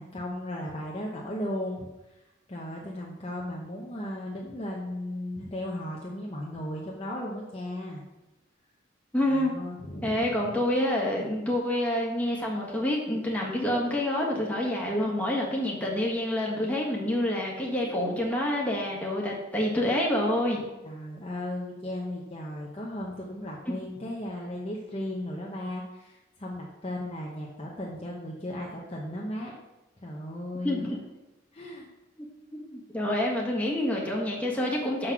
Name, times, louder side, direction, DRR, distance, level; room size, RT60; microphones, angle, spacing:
voice 1, 0.0-2.2 2.5-8.0 9.3-10.3 20.8-29.5 30.0-31.0 31.5-31.9, left 1 dB, 30° left, -3 dB, 0.9 m, -36 dB
voice 2, 9.1-9.5 10.0-20.6 23.7-23.8 30.6-30.9 32.5-35.1, left 1 dB, 5° left, -3 dB, 1.6 m, -27 dB
6.4 x 5.9 x 6.0 m, 1.0 s
head